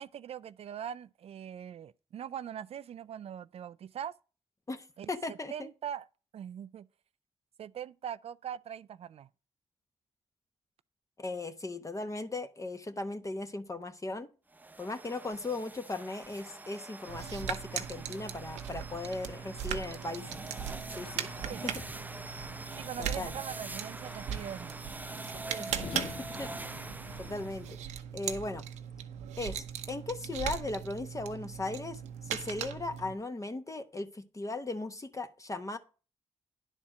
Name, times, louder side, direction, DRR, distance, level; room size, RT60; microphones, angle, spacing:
voice 1, 0.0-4.1 5.0-6.1 6.3-6.9 7.6-9.3 21.4-21.6 22.8-24.9 25.3-25.9, right 9 dB, 60° right, 0.4 m, -42 dB
voice 2, 4.7-5.7 11.2-14.3 14.8-20.2 20.9-21.3 21.6-21.7 23.0-23.3 25.6-25.7 26.4-26.8 27.2-27.8 28.1-28.6 29.4-35.8, left 2 dB, 30° left, 1.0 m, -37 dB
sound 1, 14.5-27.7, right 2 dB, 15° right, 0.6 m, -45 dB
sound 2, 17.1-33.1, right 9 dB, 90° right, 0.8 m, -39 dB
sound 3, 20.3-27.6, left 5 dB, 55° left, 1.0 m, -48 dB
9.9 x 4.3 x 6.0 m
supercardioid pair, 50°, 12 cm